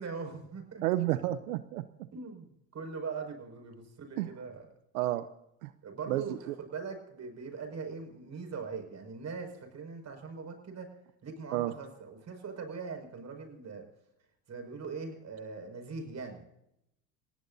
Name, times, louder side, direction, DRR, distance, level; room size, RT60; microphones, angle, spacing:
voice 1, 0.0-0.9 2.1-4.7 5.8-10.9 11.2-13.9 14.5-16.5, right 5 dB, 40° right, 4 dB, 5.8 m, -41 dB
voice 2, 0.8-2.1 4.2-4.3 4.9-5.3 5.6-5.7 6.1-6.5 11.5-11.7, right 15 dB, 85° right, 13 dB, 0.8 m, -31 dB
28.0 x 17.5 x 2.7 m, 0.81 s
hypercardioid pair, 80°, 41 cm